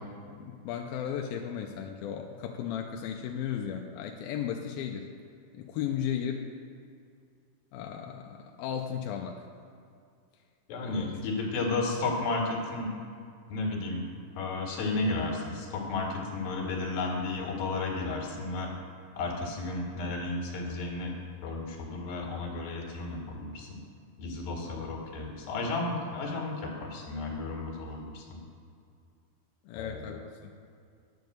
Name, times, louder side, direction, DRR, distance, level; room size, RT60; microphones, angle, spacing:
voice 1, 0.3-5.1 5.5-6.4 7.7-9.4 10.8-11.1 24.6-25.0 29.7-30.5, left 9 dB, 80° left, 2 dB, 2.2 m, -35 dB
voice 2, 10.7-12.9 13.5-14.0 14.4-18.7 19.2-21.1 21.4-23.8 24.2-28.4 29.7-30.2, left 3 dB, 65° left, -1 dB, 3.4 m, -33 dB
10.5 x 7.3 x 7.8 m, 2.4 s
omnidirectional pair, 4.7 m